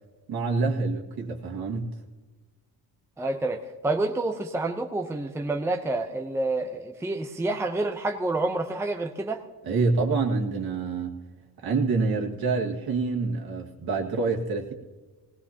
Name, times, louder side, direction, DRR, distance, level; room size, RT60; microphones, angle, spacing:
voice 1, 0.3-1.9 9.6-11.2 11.6-14.7, right 4 dB, 60° right, 0 dB, 1.9 m, -27 dB
voice 2, 3.2-9.4, right 2 dB, 5° right, 5 dB, 0.7 m, -28 dB
19.0 x 17.5 x 2.9 m, 1.3 s
cardioid pair, 120°, 42 cm